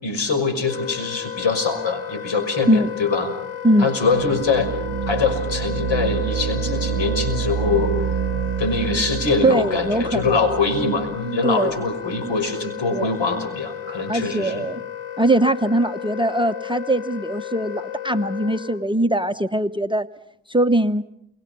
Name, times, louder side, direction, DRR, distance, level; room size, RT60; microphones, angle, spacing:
voice 1, 0.0-3.3 3.8-4.7 5.1-7.9 8.6-14.6, left 4 dB, 60° left, 9 dB, 6.0 m, -23 dB
Wind instrument woodwind instrument, 0.7-18.9, left 11 dB, 85° left, 1.5 m, -33 dB
sound 1, 4.0-11.2, right 10 dB, 55° right, 1.0 m, -27 dB
voice 2, 9.4-10.4 11.4-11.7 12.9-13.1 14.1-14.8 15.2-20.1 20.5-21.0, right 1 dB, 10° right, 12 dB, 1.0 m, -21 dB
29.5 x 24.5 x 5.5 m, 0.75 s
supercardioid pair, 55°, 49 cm